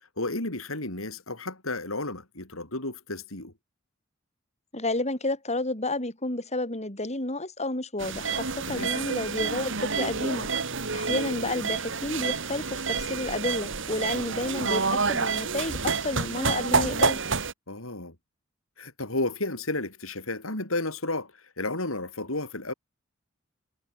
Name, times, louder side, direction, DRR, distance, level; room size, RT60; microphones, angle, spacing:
voice 1, 0.2-3.5 8.7-8.9 17.7-18.2 18.8-21.3 21.6-22.7, left 2 dB, 90° left, 7.3 m, -32 dB
voice 2, 4.7-10.5 10.9-17.2, left 2 dB, 35° left, 6.5 m, -31 dB
sound 1, 8.0-17.5, right 5 dB, 65° right, 2.8 m, -28 dB
head